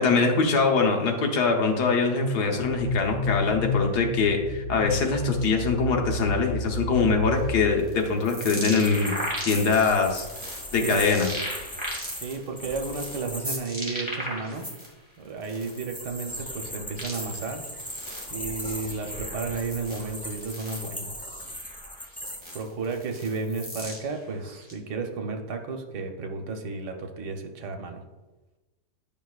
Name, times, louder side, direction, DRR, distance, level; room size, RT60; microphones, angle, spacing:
voice 1, 0.0-9.1 9.4-10.3 10.7-11.3, left 4 dB, 75° left, 2 dB, 1.5 m, -23 dB
sound 1, 2.6-8.2, left 3 dB, 30° right, 1.3 m, -31 dB
sound 2, 7.4-14.9 15.3-24.7, equal, 5° right, 1.8 m, -37 dB
sound 3, 8.3-13.6 15.4-22.6, equal, 10° left, 0.4 m, -39 dB
voice 2, 10.8-11.2 12.2-14.7 15.2-17.6 18.3-21.1 22.5-28.0, right 4 dB, 85° right, 4 dB, 1.5 m, -33 dB
10.0 x 5.4 x 2.4 m, 1.1 s
omnidirectional pair, 1.8 m